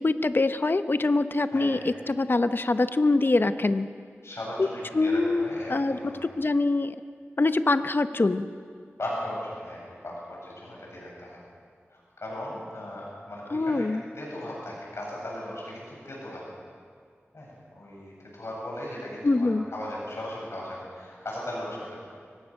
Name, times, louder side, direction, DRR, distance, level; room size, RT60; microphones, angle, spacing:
voice 1, 0.0-3.9 4.9-6.0 6.3-6.9 7.4-8.5 13.5-14.0 19.2-19.7, left 2 dB, 50° left, 11 dB, 0.8 m, -24 dB
voice 2, 4.2-6.3 9.0-11.4 11.9-13.9 14.1-16.4 17.3-22.0, left 1 dB, 75° left, -4 dB, 7.9 m, -37 dB
24.0 x 17.5 x 6.5 m, 2.2 s
wide cardioid pair, 70°, 5 cm